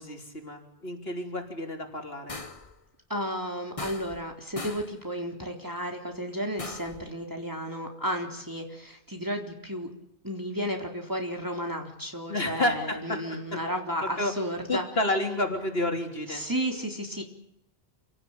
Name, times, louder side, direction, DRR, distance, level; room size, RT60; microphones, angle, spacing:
voice 1, 0.0-2.3 12.3-13.4 14.0-14.3 14.7-16.4, left 1 dB, 65° left, 3 dB, 3.8 m, -30 dB
sound 1, 2.3-2.7 3.8-4.3 4.6-5.0 6.6-7.0, left 3 dB, 30° left, 1.4 m, -39 dB
voice 2, 3.1-9.9 10.2-14.9 16.3-17.2, equal, 20° right, 2 dB, 3.8 m, -33 dB
27.5 x 18.0 x 8.9 m, 0.78 s
omnidirectional pair, 1.1 m